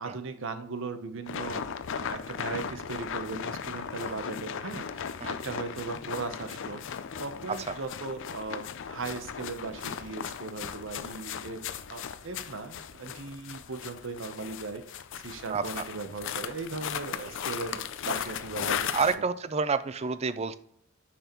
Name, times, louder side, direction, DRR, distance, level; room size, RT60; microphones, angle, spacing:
voice 1, 0.0-11.6 11.9-18.9 19.2-19.3, right 4 dB, 65° right, 9 dB, 0.8 m, -38 dB
sound 1, 1.3-19.2, left 7 dB, 60° left, 0.5 m, -37 dB
voice 2, 15.5-15.8 18.9-20.6, right 5 dB, 30° right, 14 dB, 0.4 m, -29 dB
6.7 x 6.1 x 3.0 m, 0.67 s
head